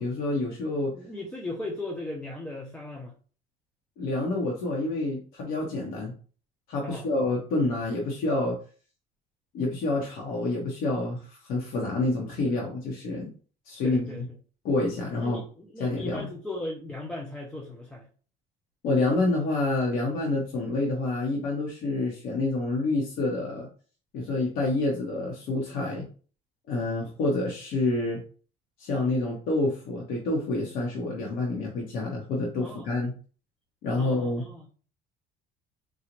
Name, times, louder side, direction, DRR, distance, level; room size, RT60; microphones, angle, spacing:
voice 1, 0.0-0.9 4.0-6.1 6.7-8.6 9.5-13.3 13.7-14.2 14.6-15.4 15.8-16.3 18.8-23.7 24.1-26.1 26.7-28.2 28.8-33.1 33.8-34.4, left 2 dB, 60° left, -2 dB, 0.8 m, -28 dB
voice 2, 0.8-3.1 6.8-7.1 13.8-14.2 15.2-18.1 32.6-32.9 34.0-34.7, left 2 dB, 5° left, -1 dB, 0.3 m, -37 dB
3.8 x 2.1 x 2.9 m, 0.40 s
cardioid pair, 165°, 17 cm